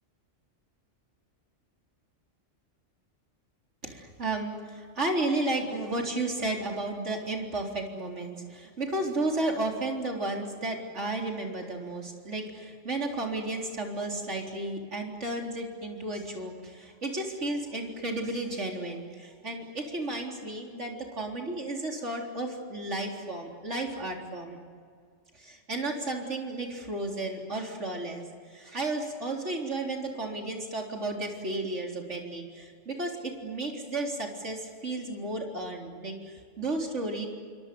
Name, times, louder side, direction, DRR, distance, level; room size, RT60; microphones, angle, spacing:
voice 1, 3.8-24.6 25.3-37.3, right 2 dB, 70° right, 1 dB, 4.2 m, -33 dB
28.0 x 23.5 x 7.0 m, 2.1 s
omnidirectional pair, 1.3 m